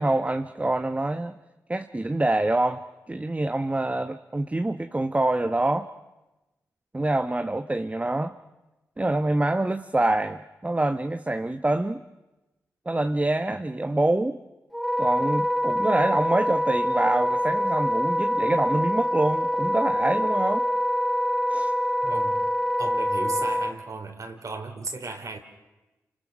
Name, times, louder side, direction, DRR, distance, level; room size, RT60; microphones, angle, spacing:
voice 1, 0.0-1.3 1.7-5.9 6.9-8.3 9.0-12.0 12.9-14.4 15.0-20.6 21.5-21.7, right 2 dB, 20° right, 8 dB, 1.1 m, -25 dB
Wind instrument woodwind instrument, 14.7-23.7, equal, ahead, 2.3 m, -25 dB
voice 2, 22.0-22.5 22.8-25.4, right 3 dB, 55° right, 4 dB, 3.8 m, -35 dB
29.0 x 25.5 x 6.4 m, 1.1 s
supercardioid pair, 40°, 7 cm